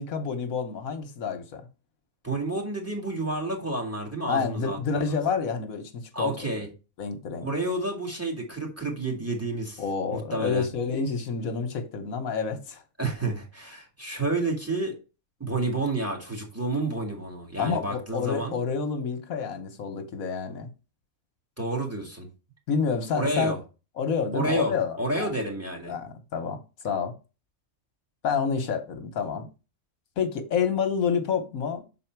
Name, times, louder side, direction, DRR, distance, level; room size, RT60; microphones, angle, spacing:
voice 1, 0.0-1.6 4.3-6.3 7.0-7.5 9.8-12.8 17.6-20.7 22.7-23.5 24.0-25.3 25.9-26.6 26.8-27.1 28.2-29.5 30.2-31.8, left 6 dB, 80° left, 1.4 m, -28 dB
voice 2, 2.2-5.2 6.1-6.7 7.4-9.8 10.1-10.7 13.0-14.9 15.4-18.6 21.6-22.3 23.1-23.6 24.3-25.9, right 2 dB, 10° right, 2.0 m, -30 dB
6.5 x 4.2 x 4.5 m
omnidirectional pair, 1.5 m